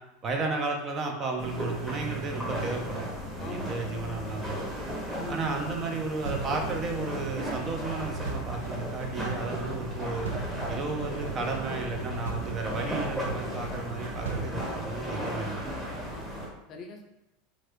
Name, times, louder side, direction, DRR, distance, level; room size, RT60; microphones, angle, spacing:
voice 1, 0.2-3.0 3.4-4.7 5.3-10.3 10.7-15.6, right 3 dB, 35° right, 2 dB, 0.6 m, -33 dB
sound 1, 1.4-16.5, equal, 10° right, 1.1 m, -36 dB
voice 2, 3.4-3.8 5.2-5.5 16.1-17.1, left 2 dB, 45° left, 3 dB, 0.5 m, -42 dB
sound 2, 6.3-15.4, right 3 dB, 90° right, 0.4 m, -38 dB
3.0 x 2.5 x 3.0 m, 0.92 s
hypercardioid pair, 95°, 0 cm